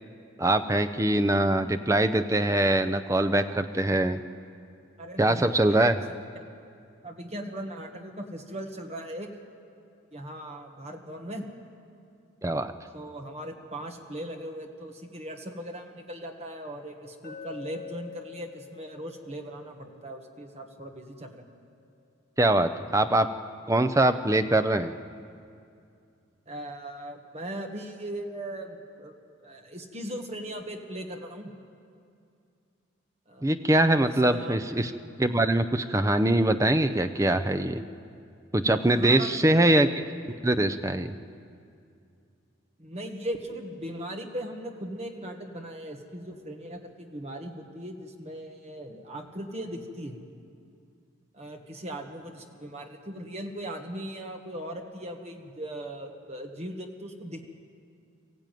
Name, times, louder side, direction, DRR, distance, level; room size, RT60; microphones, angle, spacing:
voice 1, 0.4-4.2 5.2-5.9 12.4-12.7 22.4-23.3 23.7-25.0 33.4-34.9 35.2-37.8 38.5-39.9 40.4-41.1, right 1 dB, 15° right, 9 dB, 0.6 m, -23 dB
voice 2, 5.0-5.9 7.0-9.3 10.1-11.5 12.9-21.5 26.5-29.1 29.4-31.5 33.3-33.5 34.1-34.6 38.9-39.5 42.8-50.2 51.3-57.4, right 1 dB, 30° right, 3 dB, 1.6 m, -39 dB
Glass, 17.2-21.4, left 7 dB, 45° left, 2.1 m, -47 dB
22.5 x 15.0 x 9.2 m, 2.4 s
head